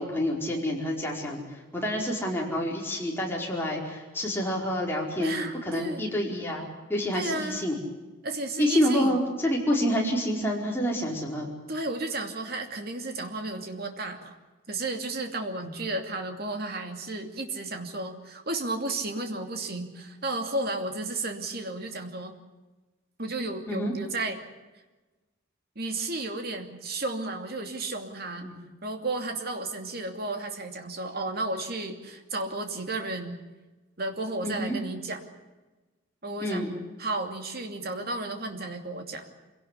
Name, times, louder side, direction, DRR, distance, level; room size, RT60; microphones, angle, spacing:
voice 1, 0.0-7.8 8.6-11.5 23.7-23.9 28.4-28.6 34.4-34.8 36.4-36.7, equal, 10° left, -2 dB, 4.8 m, -28 dB
voice 2, 5.2-6.1 7.1-7.7 8.2-9.2 11.7-14.3 14.7-22.4 23.2-24.4 25.8-28.5 28.8-33.4 34.0-35.2 36.2-36.6 37.0-39.3, right 2 dB, 50° right, 5 dB, 2.7 m, -33 dB
25.5 x 17.5 x 8.3 m, 1.2 s
head